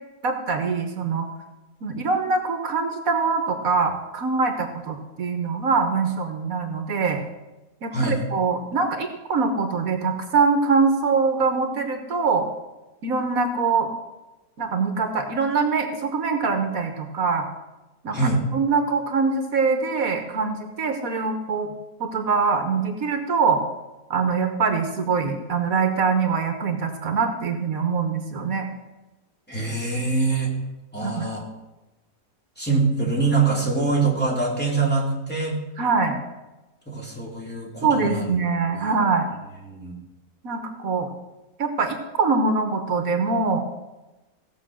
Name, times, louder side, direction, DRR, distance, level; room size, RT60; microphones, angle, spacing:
voice 1, 0.2-1.3 1.8-7.2 7.8-12.5 13.0-13.9 14.6-17.5 18.0-18.2 18.5-21.7 22.0-23.6 24.1-28.7 31.0-31.3 35.8-36.2 37.8-39.3 40.4-41.1 41.6-43.6, right 4 dB, 70° right, 5 dB, 1.6 m, -23 dB
voice 2, 18.1-18.4 29.5-30.5 30.9-31.4 32.6-35.6 36.9-38.3 38.7-38.9 39.7-40.0, right 3 dB, 5° left, -4 dB, 2.8 m, -24 dB
16.5 x 6.7 x 6.2 m, 1.1 s
omnidirectional pair, 1.6 m